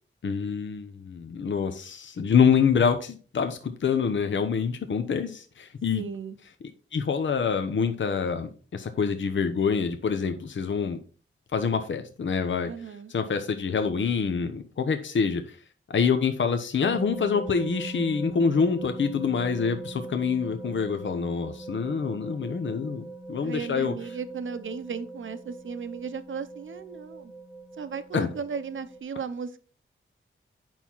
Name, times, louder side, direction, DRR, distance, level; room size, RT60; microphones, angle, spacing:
voice 1, 0.2-6.0 6.9-11.0 11.5-12.7 13.1-15.6 15.9-23.9 28.1-28.3, left 6 dB, 65° left, 7 dB, 0.8 m, -26 dB
voice 2, 5.9-6.4 12.7-13.1 23.4-27.3 27.8-29.6, right 6 dB, 70° right, 12 dB, 0.8 m, -35 dB
sound 1, 16.8-29.0, right 3 dB, 5° right, 1.2 m, -41 dB
9.1 x 5.8 x 4.6 m, 0.40 s
wide cardioid pair, 130°, 21 cm